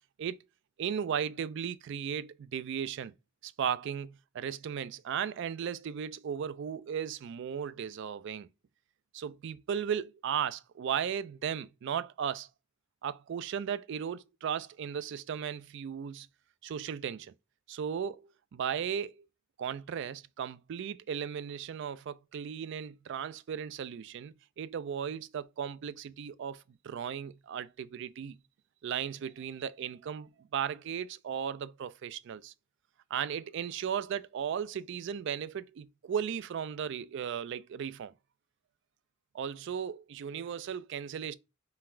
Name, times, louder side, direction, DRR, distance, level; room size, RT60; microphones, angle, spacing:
voice 1, 0.8-3.1 3.4-8.5 9.1-12.5 13.0-16.3 16.6-17.3 17.7-19.3 19.6-28.4 28.8-32.5 33.1-38.1 39.3-41.3, right 8 dB, 60° right, 0.3 m, -36 dB
3.9 x 2.5 x 4.3 m
head